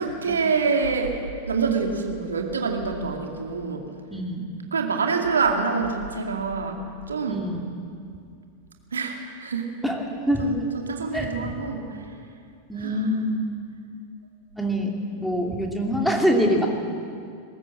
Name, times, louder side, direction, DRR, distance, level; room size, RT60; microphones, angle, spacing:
voice 1, 0.0-3.9 4.7-6.8 7.1-7.5 8.9-9.8 10.4-10.6 10.8-12.1 12.8-13.1, right 4 dB, 70° right, 3 dB, 2.4 m, -26 dB
voice 2, 4.1-4.4 7.3-7.6 9.8-10.5 11.1-11.6 12.7-13.4 14.6-14.9 15.2-16.7, equal, ahead, 0 dB, 2.7 m, -24 dB
20.5 x 17.5 x 7.7 m, 2.3 s
figure-of-eight pair, 90°, 0 cm